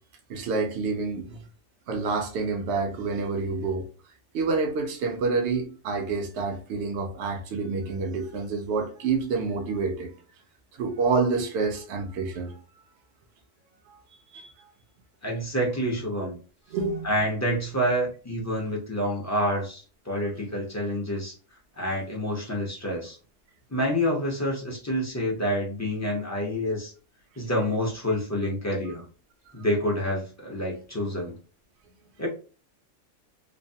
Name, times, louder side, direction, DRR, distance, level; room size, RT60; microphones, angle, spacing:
voice 1, 0.3-1.4 1.9-3.9 4.3-10.1 10.7-12.6 13.9-14.0 14.3-14.5 16.7-17.1 28.9-29.0, right 4 dB, 60° right, 0.8 m, -28 dB
voice 2, 15.2-16.4 17.0-21.3 21.8-23.2 23.7-26.9 27.4-29.0 29.5-31.4 32.2-32.3, equal, 15° left, 0.5 m, -28 dB
3.1 x 2.0 x 2.6 m
omnidirectional pair, 1.6 m